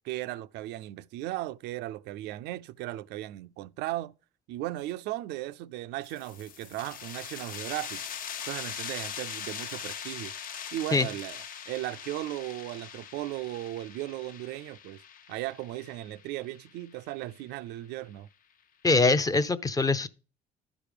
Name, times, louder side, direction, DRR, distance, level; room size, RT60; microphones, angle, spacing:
voice 1, 0.0-4.1 4.5-8.0 8.5-10.3 10.7-15.0 15.3-18.3, right 15 dB, 85° right, 0.4 m, -36 dB
sound 1, 6.0-17.4, left 8 dB, 55° left, 0.9 m, -41 dB
voice 2, 18.8-20.1, left 3 dB, 20° left, 0.6 m, -23 dB
11.5 x 5.0 x 5.0 m
cardioid pair, 110°, 17 cm